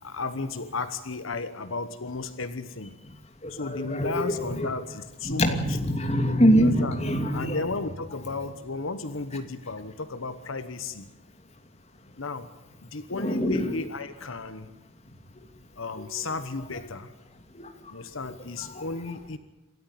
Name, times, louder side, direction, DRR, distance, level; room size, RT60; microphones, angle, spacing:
voice 1, 0.0-3.0 3.5-5.6 6.6-7.0 7.3-11.1 12.2-12.5 12.8-14.7 15.8-17.1 17.9-19.4, left 3 dB, 80° left, 12 dB, 1.2 m, -34 dB
voice 2, 3.4-4.7 5.2-7.6 13.1-13.7 17.5-17.7 18.6-18.9, equal, 30° left, 5 dB, 2.8 m, -24 dB
27.5 x 13.5 x 9.2 m, 1.0 s
head